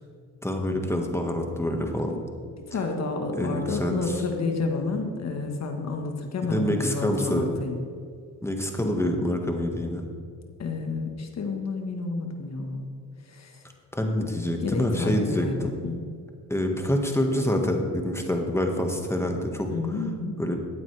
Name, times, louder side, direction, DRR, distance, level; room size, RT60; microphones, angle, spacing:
voice 1, 0.4-2.2 3.3-4.2 6.5-7.5 8.4-10.1 13.9-15.7 16.5-19.7 20.4-20.6, left 1 dB, 5° left, 3 dB, 1.7 m, -26 dB
voice 2, 2.6-7.8 10.6-12.9 13.3-13.6 14.6-16.0 19.7-20.4, left 3 dB, 45° left, 4 dB, 1.5 m, -30 dB
14.5 x 8.9 x 3.4 m, 2.2 s
supercardioid pair, 65°, 36 cm